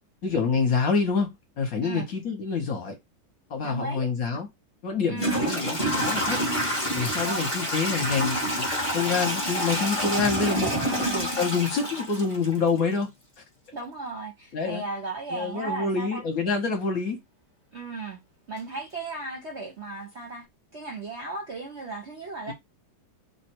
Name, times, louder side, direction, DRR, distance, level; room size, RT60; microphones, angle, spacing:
voice 1, 0.2-3.0 3.5-4.5 4.8-6.4 7.0-8.7 8.9-13.1 14.5-14.8 15.3-17.2 22.5-22.6, left 5 dB, 55° left, 1.2 m, -27 dB
voice 2, 3.6-4.1 5.1-5.4 7.2-7.5 10.8-11.1 13.7-16.2 17.7-18.2 18.5-20.5 20.7-22.5, right 3 dB, 55° right, 0.8 m, -35 dB
Toilet flush / Trickle dribble, 4.3-4.4 5.1-12.9, equal, 25° left, 0.7 m, -28 dB
3.2 x 2.2 x 4.3 m
omnidirectional pair, 2.1 m